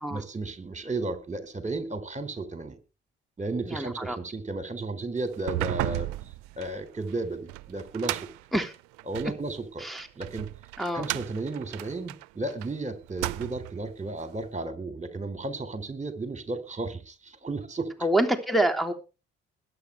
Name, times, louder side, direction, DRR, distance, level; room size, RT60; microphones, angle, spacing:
voice 1, 0.1-2.8 3.4-6.1 6.6-8.2 9.1-9.9 10.2-10.5 10.9-17.9, right 2 dB, 25° right, 11 dB, 3.9 m, -34 dB
voice 2, 3.6-4.2 8.5-8.7 9.8-10.1 10.8-11.1 18.0-18.9, right 1 dB, ahead, 2 dB, 3.3 m, -26 dB
sound 1, 5.3-9.4 10.0-12.7 13.0-13.8, right 18 dB, 75° right, 0.7 m, -34 dB
21.5 x 10.0 x 3.4 m, 0.32 s
hypercardioid pair, 50°, 29 cm